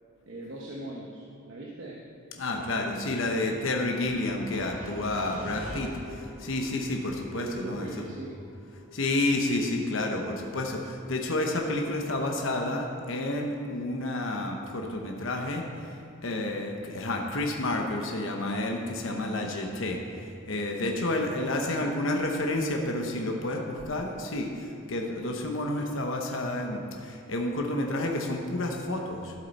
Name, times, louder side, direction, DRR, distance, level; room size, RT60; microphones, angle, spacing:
voice 1, 0.2-2.0 7.3-8.4 21.4-21.8, right 1 dB, 65° right, -3 dB, 1.0 m, -40 dB
voice 2, 2.4-7.9 8.9-15.6 16.2-20.0 20.5-29.3, left 2 dB, 75° left, 2 dB, 1.0 m, -30 dB
sound 1, 3.3-15.3, equal, 10° right, 2.0 m, -48 dB
13.0 x 7.5 x 4.2 m, 2.5 s
head